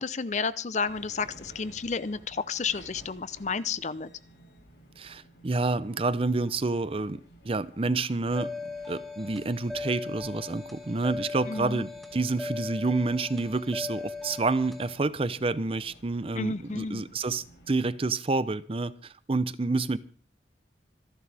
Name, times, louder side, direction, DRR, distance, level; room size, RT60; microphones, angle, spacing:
voice 1, 0.0-4.1 11.5-11.9 16.4-17.1, left 5 dB, 40° left, 16 dB, 0.6 m, -31 dB
sound 1, 0.8-17.8, equal, 80° left, 5.4 m, -55 dB
voice 2, 5.0-7.2 7.4-8.5 8.9-20.0, right 3 dB, 30° right, 16 dB, 0.6 m, -28 dB
sound 2, 8.3-14.9, left 3 dB, ahead, 2.0 m, -38 dB
26.5 x 11.0 x 3.4 m, 0.43 s
head